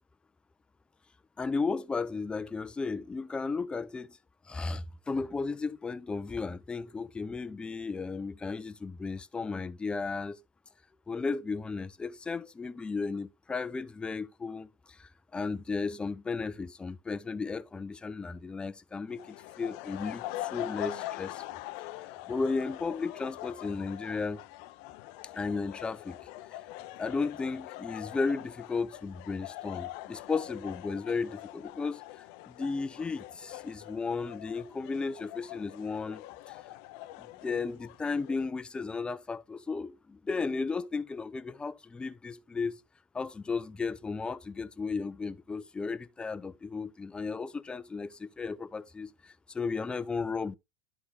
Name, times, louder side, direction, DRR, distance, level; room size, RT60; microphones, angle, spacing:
voice 1, 1.4-4.2 4.5-10.4 11.1-21.6 22.3-24.4 25.3-26.3 27.0-32.0 32.5-36.6 37.2-42.8 43.1-50.5, left 4 dB, 15° left, 0.6 m, -34 dB
sound 1, 19.1-38.4, left 16 dB, 65° left, 0.6 m, -43 dB
11.5 x 4.8 x 3.2 m
hypercardioid pair, 105°, 6 cm